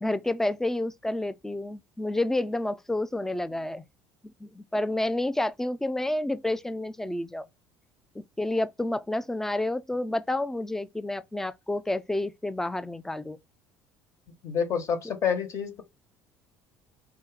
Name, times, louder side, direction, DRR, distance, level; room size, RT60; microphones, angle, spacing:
voice 1, 0.0-3.8 4.4-7.5 8.4-13.4, left 1 dB, 5° left, 0.4 m, -29 dB
voice 2, 14.4-15.8, left 7 dB, 50° left, 1.5 m, -28 dB
4.7 x 3.1 x 3.5 m
supercardioid pair, 90°, 7 cm